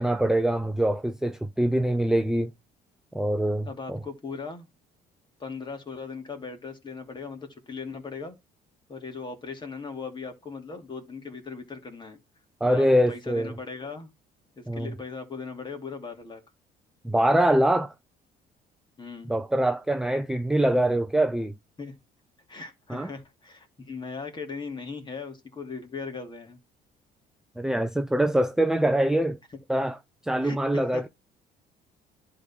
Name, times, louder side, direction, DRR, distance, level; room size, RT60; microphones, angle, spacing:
voice 1, 0.0-2.5 3.1-4.0 12.6-13.6 14.7-14.9 17.0-17.9 19.3-21.5 22.9-23.1 27.6-29.4 29.7-30.0 30.2-31.1, right 1 dB, 5° right, 0.6 m, -24 dB
voice 2, 3.6-4.7 5.4-8.4 8.9-12.2 12.6-14.1 14.6-16.4 19.0-19.3 21.8-22.0 22.5-26.6 30.4-31.1, left 4 dB, 25° left, 2.6 m, -38 dB
11.0 x 3.9 x 4.4 m
cardioid pair, 110°, 17 cm